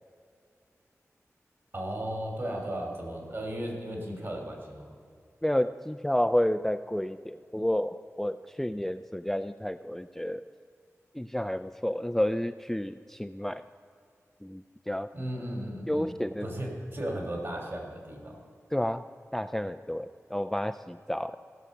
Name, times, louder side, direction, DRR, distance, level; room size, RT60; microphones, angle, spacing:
voice 1, 1.7-4.9 15.1-16.1 16.4-18.4, right 1 dB, 50° right, 1 dB, 3.0 m, -35 dB
voice 2, 5.4-10.4 11.1-13.6 14.4-15.1 15.9-16.5 18.7-19.0 19.3-21.4, left 1 dB, 5° left, 11 dB, 0.3 m, -30 dB
16.5 x 6.2 x 6.6 m, 2.3 s
wide cardioid pair, 55°, 5 cm